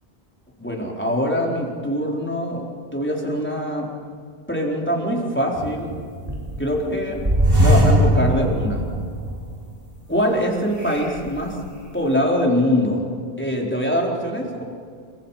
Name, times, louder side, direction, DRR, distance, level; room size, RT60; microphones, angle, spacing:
voice 1, 0.6-2.6 2.9-3.9 4.5-5.9 6.6-7.2 7.6-8.8 10.1-11.6 11.9-13.0 13.4-14.6, equal, 10° left, -1 dB, 4.4 m, -23 dB
sound 1, 5.6-6.7 7.1-9.5 10.0-10.1 10.8-11.5, equal, 35° right, 4.5 m, -20 dB
30.0 x 25.0 x 5.8 m, 2.1 s
omnidirectional pair, 1.1 m